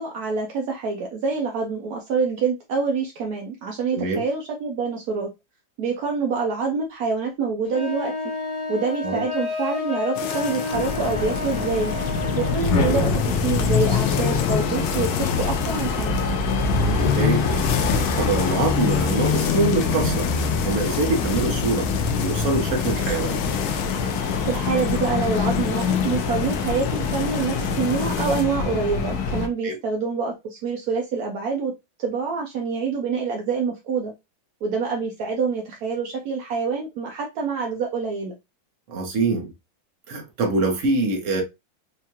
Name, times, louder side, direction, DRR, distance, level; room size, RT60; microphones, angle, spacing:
voice 1, 0.0-5.3 5.8-8.1 8.7-11.9 12.4-16.1 24.4-31.7 32.0-34.1 34.6-38.3, right 5 dB, 70° right, 0.9 m, -26 dB
voice 2, 3.9-4.2 9.0-9.2 17.2-17.5 17.9-20.3 20.6-21.9 22.2-23.4 29.6-29.8 38.9-39.5 40.1-41.4, right 3 dB, 50° right, 1.1 m, -24 dB
sound 1, 7.6-12.6, left 3 dB, 25° right, 1.0 m, -30 dB
sound 2, 10.1-28.4, left 8 dB, 85° left, 1.4 m, -31 dB
sound 3, 10.7-29.5, left 5 dB, 65° left, 1.0 m, -24 dB
4.6 x 2.4 x 2.8 m
omnidirectional pair, 2.2 m